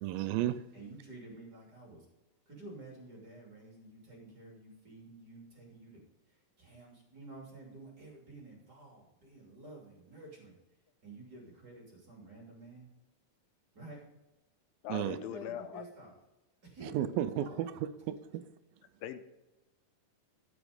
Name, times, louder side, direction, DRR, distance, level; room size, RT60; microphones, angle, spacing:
voice 1, 0.0-0.6 14.9-15.2 16.8-18.4, right 12 dB, 85° right, 13 dB, 2.3 m, -33 dB
voice 2, 0.7-2.1 2.5-6.0 6.3-10.5 11.0-12.9 13.7-14.0 15.0-16.1 16.6-17.6, right 2 dB, 30° right, -1 dB, 3.0 m, -51 dB
voice 3, 14.8-15.8 19.0-19.2, left 10 dB, 80° left, 10 dB, 2.4 m, -41 dB
13.5 x 6.0 x 5.2 m, 1.0 s
omnidirectional pair, 4.1 m